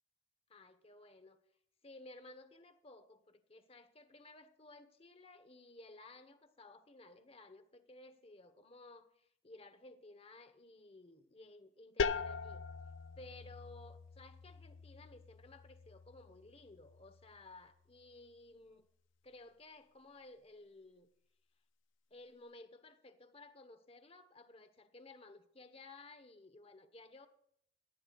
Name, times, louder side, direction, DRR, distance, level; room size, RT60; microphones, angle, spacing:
voice 1, 0.5-1.4 1.8-12.6 13.2-18.9 19.2-21.1 22.1-27.3, left 2 dB, 30° left, 10 dB, 1.0 m, -57 dB
sound 1, 12.0-17.5, left 5 dB, 75° left, 0.5 m, -42 dB
18.5 x 13.5 x 2.3 m, 0.70 s
head